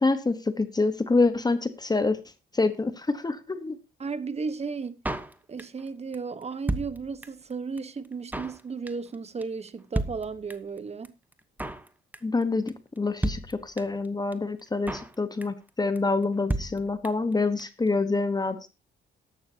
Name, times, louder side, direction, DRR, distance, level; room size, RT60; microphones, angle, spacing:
voice 1, 0.0-2.2 2.5-3.8 12.2-18.7, left 3 dB, 20° left, 1.2 m, -26 dB
voice 2, 4.0-5.0 5.5-11.1, right 5 dB, 30° right, 1.1 m, -34 dB
Drum kit, 5.1-5.9 6.1-6.2 6.4-7.5 7.8-7.9 8.1-8.6 8.9-9.2 9.4-9.5 9.7-9.8 10.0-10.8 11.1-11.2 11.3-11.9 12.1-12.4 12.7-12.8 13.0-13.1 13.2-14.1 14.3-14.4 14.6-15.2 15.4-15.7 16.0-16.1 16.2-16.3 16.5-17.3 17.6-17.7 17.9-18.0, right 1 dB, 10° right, 1.0 m, -32 dB
14.0 x 11.5 x 2.8 m
cardioid pair, 90°, 20 cm